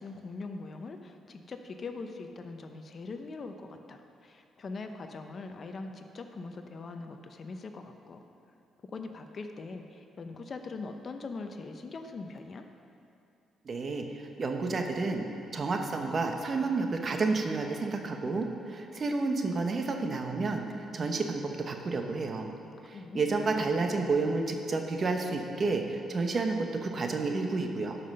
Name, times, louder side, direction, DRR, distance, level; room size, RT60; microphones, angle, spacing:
voice 1, 0.0-8.2 8.8-12.7 22.8-23.4, left 3 dB, 45° left, 6 dB, 0.7 m, -42 dB
voice 2, 13.6-15.3 15.5-22.5 22.8-28.0, right 3 dB, 40° right, 4 dB, 1.0 m, -30 dB
12.5 x 5.7 x 5.6 m, 2.6 s
cardioid pair, 90°, 0 cm